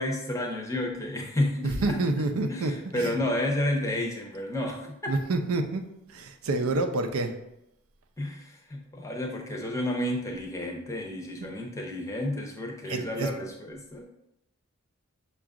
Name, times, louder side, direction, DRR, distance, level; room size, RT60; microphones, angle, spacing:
voice 1, 0.0-2.0 2.5-5.1 8.2-14.0, left 1 dB, 15° left, 0 dB, 0.6 m, -31 dB
voice 2, 1.8-3.2 3.9-4.0 5.1-5.8 6.1-7.3 11.4-11.5 12.8-13.3, right 2 dB, 75° right, 5 dB, 0.5 m, -28 dB
5.8 x 2.4 x 3.6 m, 0.85 s
head